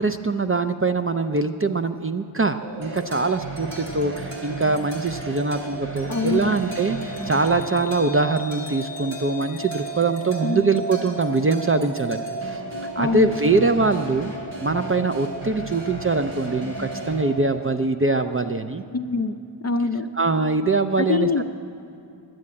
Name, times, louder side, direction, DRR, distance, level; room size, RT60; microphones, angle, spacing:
voice 1, 0.0-12.6 13.0-14.3 14.6-18.8 20.2-21.3, right 3 dB, 30° right, 7 dB, 0.4 m, -23 dB
sound 1, 2.6-17.7, right 2 dB, 60° right, 1.3 m, -35 dB
sound 2, 2.8-17.2, right 2 dB, 80° right, 3.1 m, -38 dB
voice 2, 6.1-6.5 10.4-10.6 13.0-13.4 18.9-19.3 19.6-20.1 21.0-21.4, left 4 dB, 35° left, 9 dB, 0.4 m, -24 dB
11.0 x 7.7 x 8.4 m, 2.6 s
wide cardioid pair, 75°, 48 cm